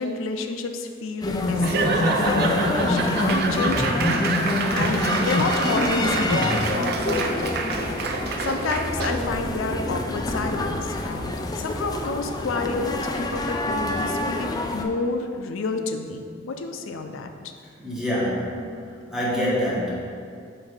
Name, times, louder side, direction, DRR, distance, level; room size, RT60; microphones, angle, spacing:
voice 1, 0.0-4.1 4.7-7.6 8.4-17.5, left 3 dB, 90° left, 6 dB, 0.5 m, -29 dB
sound 1, 1.2-14.8, left 1 dB, 20° left, 0.4 m, -26 dB
Laughter / Applause / Crowd, 1.6-9.3, right 3 dB, 55° right, 0.5 m, -27 dB
voice 2, 17.8-18.8 19.1-20.0, equal, ahead, -7 dB, 1.3 m, -25 dB
7.1 x 2.7 x 5.1 m, 2.3 s
head